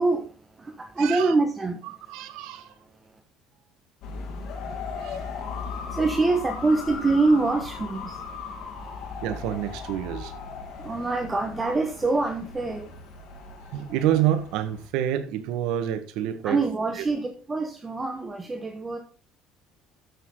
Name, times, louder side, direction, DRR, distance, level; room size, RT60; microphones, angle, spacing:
voice 1, 0.0-1.9 2.8-3.2 5.4-9.0 10.8-12.9 16.4-19.0, right 3 dB, 20° right, 1.3 m, -26 dB
voice 2, 1.0-1.3 2.1-2.7 5.0-5.5 9.2-10.3 13.7-16.6 17.0-17.1, right 11 dB, 80° right, 1.5 m, -28 dB
sound 1, 4.0-14.9, left 5 dB, 65° left, 4.2 m, -37 dB
13.0 x 6.5 x 3.8 m
cardioid pair, 140°, 0 cm